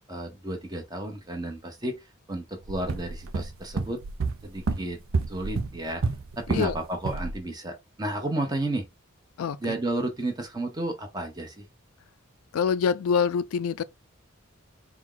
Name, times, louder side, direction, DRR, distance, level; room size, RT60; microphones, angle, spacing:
voice 1, 0.1-2.0 2.3-4.0 4.4-5.0 5.3-6.0 6.4-8.9 9.6-11.7, right 1 dB, 20° right, 0.9 m, -32 dB
sound 1, 2.7-6.8 7.0-7.3, right 4 dB, 80° right, 0.6 m, -30 dB
voice 2, 12.5-13.8, left 6 dB, 85° left, 0.4 m, -25 dB
4.4 x 2.3 x 3.8 m
head